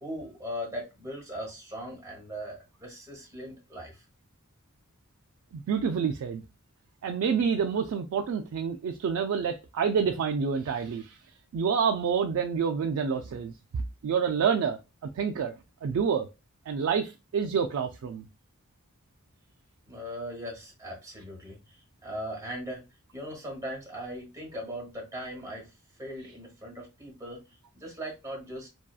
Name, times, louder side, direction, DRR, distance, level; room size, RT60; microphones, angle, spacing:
voice 1, 0.0-4.0 19.9-21.8 22.0-22.8 23.1-25.7 26.0-28.7, equal, 15° right, 1.1 m, -39 dB
voice 2, 5.5-6.4 7.0-11.2 11.5-14.8 15.2-15.5 15.8-16.3 16.7-18.3, right 6 dB, 70° right, 0.3 m, -28 dB
2.6 x 2.3 x 2.3 m
head